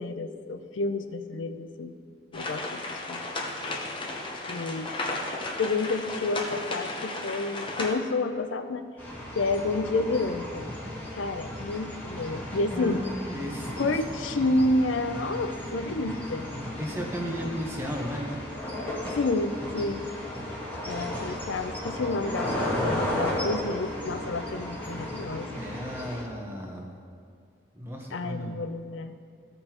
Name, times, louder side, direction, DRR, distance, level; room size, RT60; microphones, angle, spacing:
voice 1, 0.0-1.9 2.3-3.2 4.5-4.9 5.6-8.9 9.4-10.6 11.1-13.0 13.8-16.5 19.1-20.0 20.9-25.5 28.1-29.3, left 2 dB, 85° left, 9 dB, 0.5 m, -29 dB
sound 1, 2.3-7.9, left 2 dB, 25° left, 0.8 m, -34 dB
sound 2, 9.0-26.2, left 1 dB, 10° left, 1.4 m, -34 dB
voice 2, 12.7-14.0 16.8-18.3 25.6-26.9 27.7-28.6, equal, 15° right, -1 dB, 1.0 m, -35 dB
15.0 x 5.4 x 3.0 m, 2.2 s
head